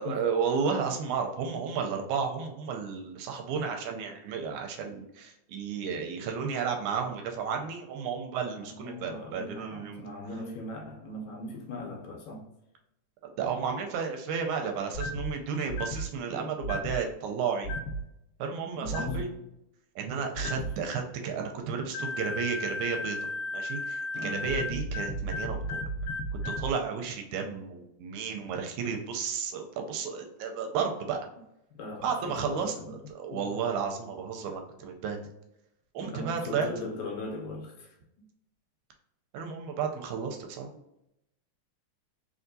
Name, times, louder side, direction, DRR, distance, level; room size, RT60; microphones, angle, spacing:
voice 1, 0.0-10.0 13.2-17.8 18.4-19.3 20.0-23.2 23.5-25.8 26.3-31.2 32.0-35.2 35.9-36.7 39.3-40.7, right 6 dB, 80° right, 1.9 m, -32 dB
voice 2, 8.6-12.5 18.7-19.3 20.4-20.7 24.1-24.6 31.8-33.0 33.3-33.5 36.0-38.2, left 2 dB, 75° left, 1.9 m, -40 dB
sound 1, 14.9-15.3 15.7-16.1 16.6-17.0 17.6-18.0 18.9-19.2 20.4-20.7 21.9-26.7, left 1 dB, 90° left, 2.1 m, -33 dB
4.2 x 3.5 x 2.6 m
omnidirectional pair, 3.6 m